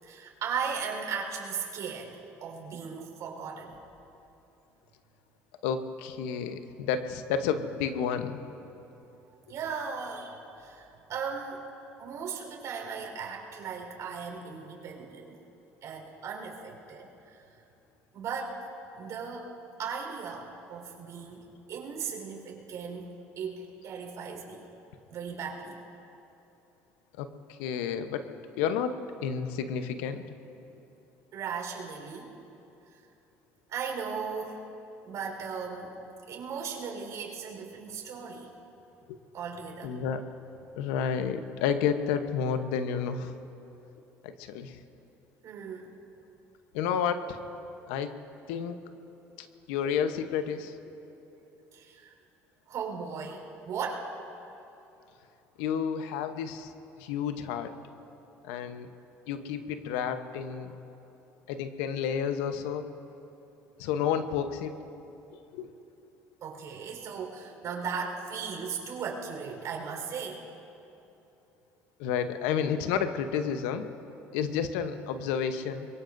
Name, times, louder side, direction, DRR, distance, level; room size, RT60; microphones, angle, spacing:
voice 1, 0.0-3.8 9.5-11.6 12.0-15.4 15.8-17.5 18.1-18.7 19.0-19.5 19.8-24.6 25.1-25.8 31.3-32.4 32.9-33.0 33.7-34.7 35.1-36.0 36.3-38.5 39.3-40.0 45.4-46.0 51.7-52.1 52.7-54.1 66.4-70.5, right 6 dB, 60° right, 0 dB, 4.4 m, -37 dB
voice 2, 5.6-8.4 27.2-28.2 28.6-28.9 29.2-30.2 39.1-39.2 39.8-40.2 40.8-43.3 44.2-44.8 46.7-47.4 47.9-48.1 48.5-48.8 49.7-50.8 55.6-56.7 57.0-57.7 58.4-58.9 59.3-60.7 61.5-62.9 63.8-64.7 65.5-65.7 72.0-73.9 74.3-75.9, left 7 dB, 80° left, 9 dB, 1.0 m, -30 dB
24.0 x 22.5 x 2.7 m, 3.0 s
hypercardioid pair, 70°, 6 cm